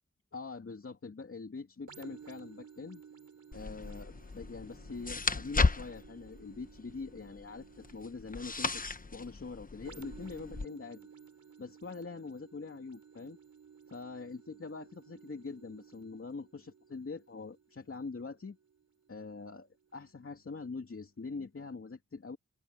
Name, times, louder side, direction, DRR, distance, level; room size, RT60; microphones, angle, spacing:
voice 1, 0.3-3.0 3.5-8.8 9.1-11.1 11.6-13.4 13.9-18.6 19.1-22.4, left 4 dB, 45° left, 2.7 m, -44 dB
sound 1, 1.9-19.4 19.9-20.1, right 7 dB, 75° right, 3.7 m, -56 dB
sound 2, 3.5-10.7, left 3 dB, 30° left, 1.0 m, -35 dB
open air
wide cardioid pair, 115°, 29 cm